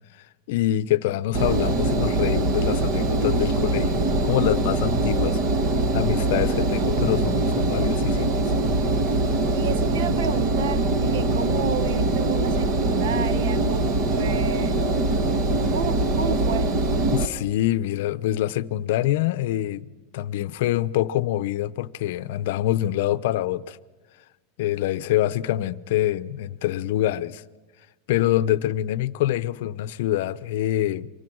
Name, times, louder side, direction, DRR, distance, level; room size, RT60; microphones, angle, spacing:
voice 1, 0.5-5.4 5.9-8.4 17.1-19.9 20.1-23.8 24.6-27.4 28.1-31.1, left 13 dB, 60° left, 0.7 m, -25 dB
Engine, 1.3-17.3, right 2 dB, 35° right, 1.3 m, -23 dB
voice 2, 9.5-14.8 15.7-16.7, right 7 dB, 85° right, 0.9 m, -31 dB
29.5 x 25.0 x 6.3 m
supercardioid pair, 170°, 0 cm